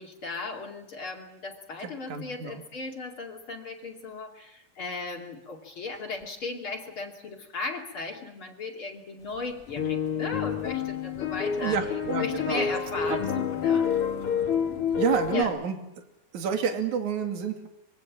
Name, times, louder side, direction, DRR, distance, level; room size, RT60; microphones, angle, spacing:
voice 1, 0.0-11.8 12.2-13.9 14.2-14.8 15.3-15.5, left 3 dB, 35° left, 0 dB, 2.8 m, -37 dB
voice 2, 1.8-2.6 11.6-12.6 13.0-13.5 15.0-15.8 16.3-17.7, right 7 dB, 50° right, 5 dB, 3.5 m, -29 dB
sound 1, 9.7-15.4, left 8 dB, 70° left, 1.3 m, -28 dB
25.0 x 23.5 x 7.4 m, 0.87 s
omnidirectional pair, 4.9 m